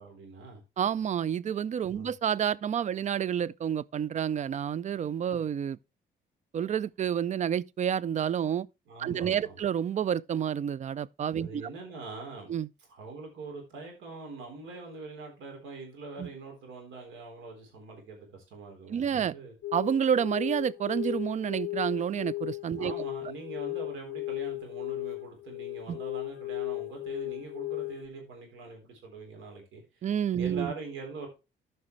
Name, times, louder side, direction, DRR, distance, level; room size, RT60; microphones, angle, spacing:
voice 1, 0.0-0.6 1.9-2.1 8.9-9.6 11.4-12.6 12.9-19.5 22.8-30.1 30.4-31.3, right 4 dB, 85° right, 3.7 m, -43 dB
voice 2, 0.8-5.8 6.5-8.7 9.0-11.6 12.5-12.7 16.2-16.3 18.9-19.3 19.7-22.9 25.9-26.0 30.0-30.7, right 8 dB, 35° right, 0.4 m, -29 dB
sound 1, 19.6-28.1, left 20 dB, 60° left, 0.7 m, -36 dB
13.5 x 5.4 x 3.2 m
cardioid pair, 90°, 20 cm